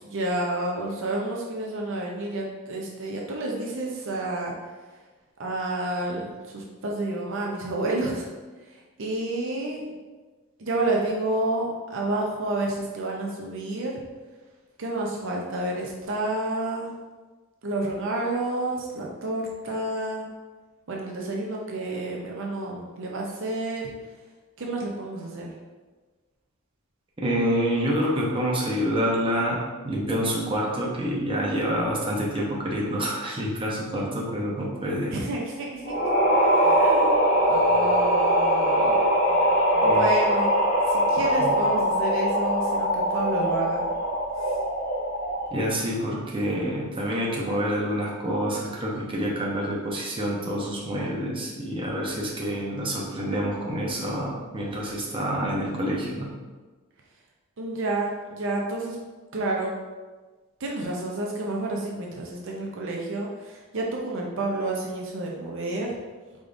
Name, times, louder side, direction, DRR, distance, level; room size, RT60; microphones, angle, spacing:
voice 1, 0.0-4.5 5.4-8.3 8.6-9.8 10.6-14.0 14.8-16.9 17.6-20.3 20.9-23.9 24.6-25.5 35.1-36.0 36.3-37.2 37.5-39.0 39.8-43.8 44.4-44.5 57.6-59.0 59.3-59.7 60.6-66.0, right 2 dB, 60° right, -1 dB, 0.6 m, -30 dB
voice 2, 27.2-29.6 29.8-35.2 45.5-56.3, equal, 25° right, -4 dB, 0.7 m, -27 dB
sound 1, 35.8-45.6, equal, 45° left, 1.0 m, -22 dB
5.0 x 3.6 x 2.5 m, 1.3 s
head